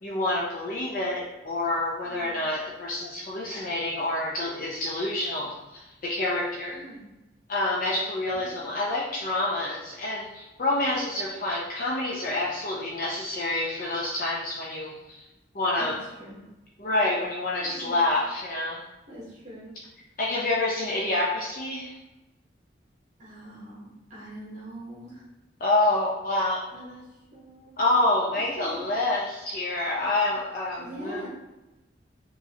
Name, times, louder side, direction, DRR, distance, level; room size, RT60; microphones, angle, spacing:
voice 1, 0.0-6.8 7.5-15.2 15.5-16.0 16.8-18.8 20.2-21.9 25.6-26.7 27.8-31.3, left 2 dB, 50° left, -4 dB, 0.6 m, -27 dB
voice 2, 2.0-2.5 6.7-7.0 8.3-8.6 15.8-15.9 16.2-16.5 17.6-18.1 19.1-19.7 23.2-25.3 26.7-27.7 28.6-28.8 30.8-31.3, equal, 40° right, -7 dB, 1.0 m, -43 dB
6.1 x 3.1 x 2.8 m, 1.0 s
head